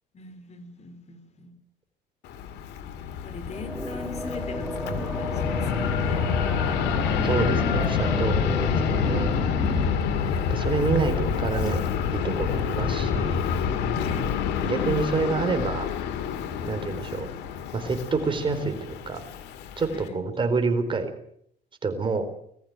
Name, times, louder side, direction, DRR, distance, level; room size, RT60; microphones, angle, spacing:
voice 1, 0.1-1.6 3.2-6.3 14.0-14.4 19.9-20.2, left 3 dB, 40° left, 8 dB, 3.8 m, -41 dB
Fixed-wing aircraft airplane, 2.2-20.1, left 7 dB, 85° left, 2.2 m, -27 dB
sound 1, 3.5-9.9, right 1 dB, 5° right, 0.9 m, -34 dB
voice 2, 7.2-8.5 8.9-9.3 10.5-11.9 12.1-13.4 14.6-15.9 16.6-17.3 17.7-19.2 19.8-21.1 21.8-22.3, right 4 dB, 30° right, 7 dB, 4.3 m, -27 dB
20.0 x 14.5 x 9.1 m, 0.69 s
cardioid pair, 110°, 17 cm